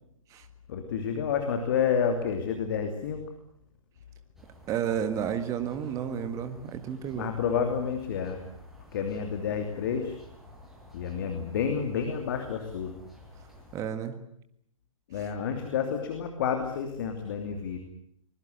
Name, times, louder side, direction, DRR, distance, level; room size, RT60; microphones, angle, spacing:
voice 1, 0.7-3.2 7.1-8.4 8.9-10.2 10.9-12.9 15.1-17.8, left 7 dB, 40° left, 5 dB, 2.9 m, -29 dB
sound 1, 4.3-13.8, equal, ahead, 5.5 m, -53 dB
voice 2, 4.7-7.3 13.7-14.1, right 8 dB, 20° right, 9 dB, 1.7 m, -31 dB
24.0 x 21.5 x 8.0 m, 0.72 s
figure-of-eight pair, 120°, 17 cm